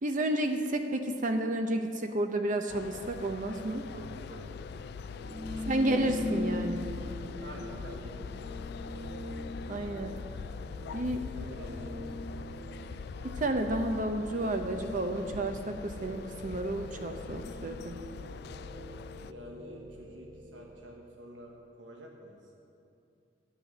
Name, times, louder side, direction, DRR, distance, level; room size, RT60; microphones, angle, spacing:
voice 1, 0.0-3.9 5.7-6.8 9.7-10.1 10.9-11.2 13.2-18.0, right 1 dB, 45° right, 6 dB, 0.7 m, -31 dB
sound 1, 2.7-19.3, left 5 dB, 60° left, 0.3 m, -43 dB
voice 2, 3.9-5.9 7.4-9.0 11.1-12.0 19.2-22.4, equal, 90° right, 0 dB, 1.3 m, -49 dB
sound 2, 5.1-20.9, left 1 dB, 65° right, 2.4 m, -42 dB
13.0 x 9.0 x 6.6 m, 2.6 s
head